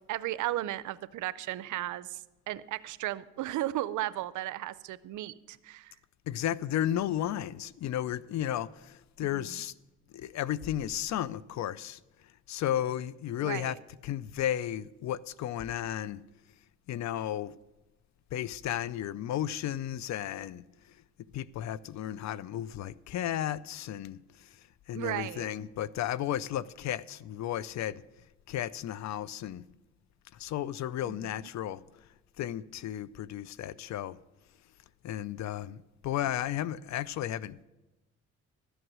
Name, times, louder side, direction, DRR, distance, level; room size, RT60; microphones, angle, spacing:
voice 1, 0.1-2.2 2.5-5.9 9.3-9.6 13.4-13.8 24.9-25.5 31.0-31.3, right 15 dB, 80° right, 0.6 m, -35 dB
voice 2, 6.3-9.7 10.1-12.0 12.5-13.8 14.0-16.2 16.9-17.5 18.3-20.6 21.3-24.5 24.9-28.0 28.5-29.6 30.3-31.8 32.4-34.2 35.0-37.6, left 11 dB, 65° left, 0.5 m, -33 dB
13.0 x 8.0 x 6.1 m
cardioid pair, 90°, 30 cm